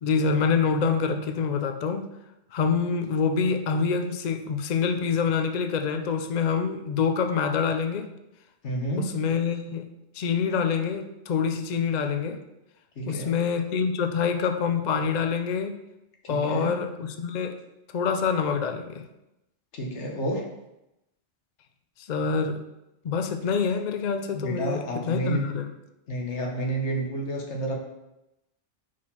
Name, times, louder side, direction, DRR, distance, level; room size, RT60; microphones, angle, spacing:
voice 1, 0.0-2.1 2.5-8.1 9.0-9.8 10.1-12.4 13.0-15.8 16.3-17.6 17.9-19.0 22.0-22.6 23.0-25.7, left 6 dB, 50° left, 6 dB, 0.5 m, -26 dB
voice 2, 8.6-9.2 13.0-13.4 16.2-16.9 19.7-20.5 24.3-25.5 26.1-27.8, right 1 dB, 75° left, 1 dB, 1.5 m, -30 dB
4.9 x 4.4 x 5.5 m, 0.90 s
omnidirectional pair, 1.2 m